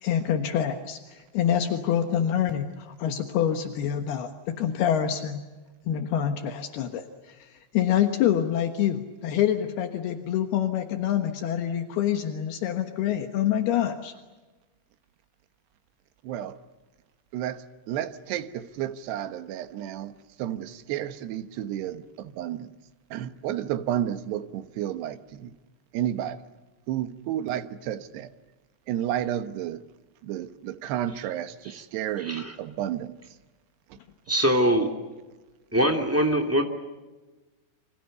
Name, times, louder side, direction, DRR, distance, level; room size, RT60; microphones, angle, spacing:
voice 1, 0.0-5.4 5.9-7.4 7.7-14.1, left 10 dB, 75° left, 3.3 m, -26 dB
voice 2, 16.2-16.6 17.3-22.7 23.1-25.5 25.9-26.4 26.9-28.3 28.9-29.8 30.2-33.1, right 11 dB, 85° right, 3.3 m, -31 dB
voice 3, 32.2-32.6 34.3-34.9 35.7-36.6, equal, 5° right, 2.1 m, -23 dB
29.0 x 26.0 x 6.8 m
omnidirectional pair, 4.7 m